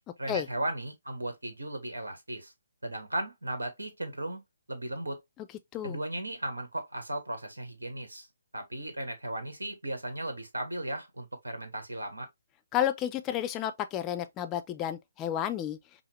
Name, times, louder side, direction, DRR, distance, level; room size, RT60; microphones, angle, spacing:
voice 1, 0.2-2.5 2.8-4.4 4.7-5.2 5.8-8.3 8.5-12.3, right 1 dB, 80° right, 1.2 m, -36 dB
voice 2, 12.7-15.8, left 11 dB, 20° left, 0.5 m, -31 dB
5.5 x 2.0 x 3.1 m
figure-of-eight pair, 140°, 0 cm